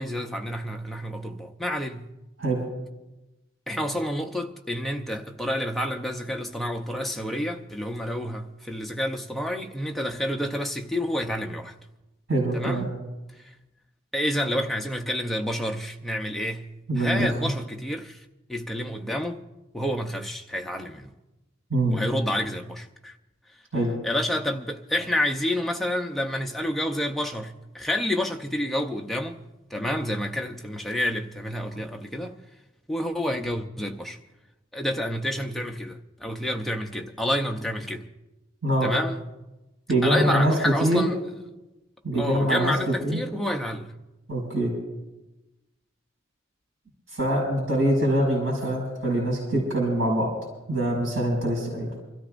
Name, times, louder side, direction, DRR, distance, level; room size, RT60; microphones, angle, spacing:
voice 1, 0.0-2.1 3.7-11.7 12.5-12.9 13.4-13.5 14.1-16.7 17.0-19.4 19.7-21.1 21.9-23.1 24.0-29.4 29.7-32.3 32.9-34.2 34.7-38.0 38.8-39.2 40.0-41.2 42.2-43.9, left 1 dB, ahead, 0.7 m, -29 dB
voice 2, 12.3-12.9 16.9-17.3 21.7-22.0 23.7-23.9 38.6-38.9 39.9-40.5 40.8-41.1 42.0-43.2 44.3-44.7 47.1-50.3 50.7-51.9, right 1 dB, 90° right, 5.6 m, -24 dB
28.5 x 13.5 x 2.6 m
head